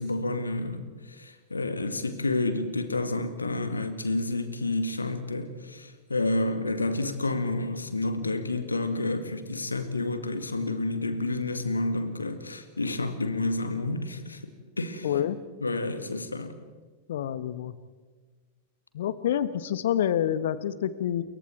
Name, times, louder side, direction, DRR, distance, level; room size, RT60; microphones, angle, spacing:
voice 1, 0.0-14.4 14.8-15.1 15.6-16.5, left 2 dB, 80° left, 10 dB, 2.0 m, -30 dB
voice 2, 15.0-15.4 17.1-17.7 18.9-21.2, left 10 dB, 60° left, 15 dB, 1.2 m, -27 dB
28.0 x 23.0 x 4.5 m, 1.4 s
figure-of-eight pair, 90°, 0 cm